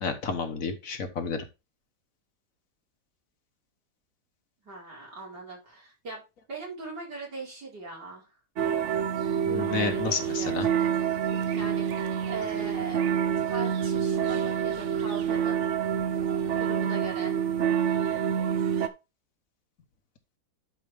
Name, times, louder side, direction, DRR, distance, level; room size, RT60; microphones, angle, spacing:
voice 1, 0.0-1.4 9.4-10.7, left 5 dB, 55° left, 7 dB, 1.5 m, -30 dB
voice 2, 4.6-8.3 9.5-11.1 11.5-13.0 13.5-15.6 16.6-17.4, right 3 dB, 85° right, -3 dB, 5.0 m, -40 dB
sound 1, 8.6-18.9, right 8 dB, 55° right, 1.0 m, -27 dB
11.5 x 4.9 x 3.4 m, 0.26 s
omnidirectional pair, 1.8 m